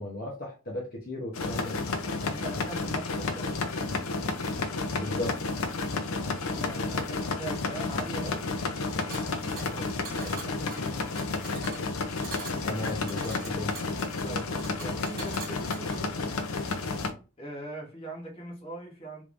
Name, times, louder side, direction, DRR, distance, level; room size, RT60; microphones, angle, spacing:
voice 1, 0.0-1.7 4.9-5.4 12.6-13.7, left 1 dB, 45° left, 0.8 m, -35 dB
sound 1, 1.3-17.1, left 3 dB, 80° left, 0.6 m, -31 dB
voice 2, 2.1-3.5 6.5-8.5 9.1-11.1 14.2-16.3 17.4-19.2, right 2 dB, 25° left, 1.1 m, -42 dB
sound 2, 9.1-16.0, right 4 dB, 45° right, 1.3 m, -44 dB
3.4 x 3.1 x 2.5 m
head